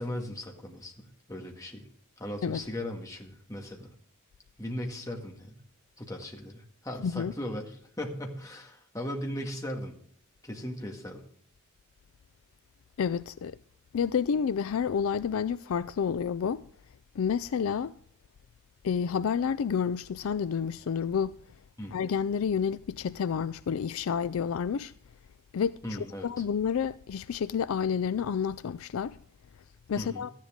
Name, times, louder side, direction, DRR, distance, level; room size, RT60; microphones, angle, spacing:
voice 1, 0.0-1.9 2.2-3.9 4.6-5.5 6.0-9.9 10.4-11.2 21.8-21.9 25.8-26.4 30.0-30.3, left 1 dB, 15° left, 1.9 m, -38 dB
voice 2, 13.0-13.6 13.9-16.6 17.2-17.9 18.8-21.4 21.9-24.9 25.5-29.2 29.9-30.3, left 7 dB, 65° left, 0.4 m, -29 dB
13.5 x 10.5 x 3.7 m
head